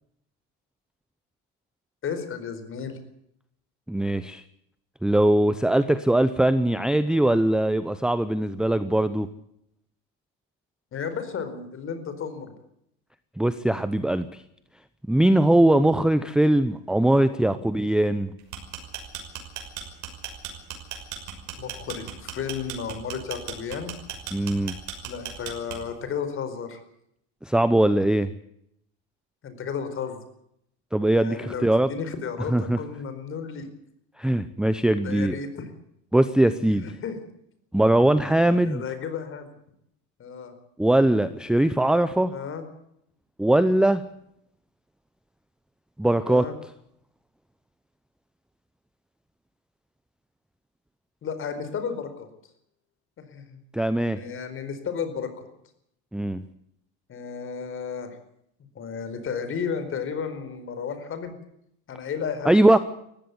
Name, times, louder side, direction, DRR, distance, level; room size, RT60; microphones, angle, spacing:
voice 1, 2.0-3.0 10.9-12.5 17.3-17.4 21.6-23.9 25.0-26.8 29.4-30.2 31.2-33.7 34.9-35.7 36.6-37.2 38.3-39.5 40.2-40.5 42.3-42.6 46.3-46.5 51.2-52.3 53.2-53.6 54.2-55.5 57.1-58.1 58.7-61.4 61.9-62.5, left 6 dB, 35° left, 10 dB, 4.6 m, -33 dB
voice 2, 3.9-4.4 5.0-9.3 13.4-14.3 15.1-18.3 24.3-24.7 27.4-28.3 30.9-31.9 32.5-32.8 34.2-35.4 36.1-36.9 37.7-38.8 40.8-42.3 43.4-44.0 46.0-46.5 53.7-54.2 56.1-56.4 62.5-62.8, right 1 dB, ahead, 11 dB, 0.7 m, -21 dB
sound 1, 18.4-26.0, right 9 dB, 55° right, 5.9 m, -36 dB
18.5 x 15.5 x 9.5 m, 0.75 s
supercardioid pair, 130°, 35 cm